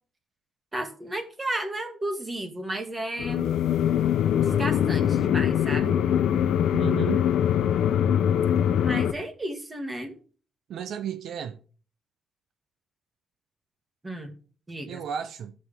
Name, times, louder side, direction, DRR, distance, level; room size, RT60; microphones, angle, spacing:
voice 1, 0.7-3.4 4.4-6.0 8.8-10.1 14.0-14.3 14.7-15.0, right 1 dB, 20° right, 2.1 m, -33 dB
sound 1, 3.2-9.1, left 9 dB, 85° left, 0.7 m, -23 dB
voice 2, 6.7-7.3 10.7-11.6 14.9-15.5, right 8 dB, 75° right, 0.7 m, -33 dB
14.0 x 6.4 x 3.6 m
cardioid pair, 105°, 0 cm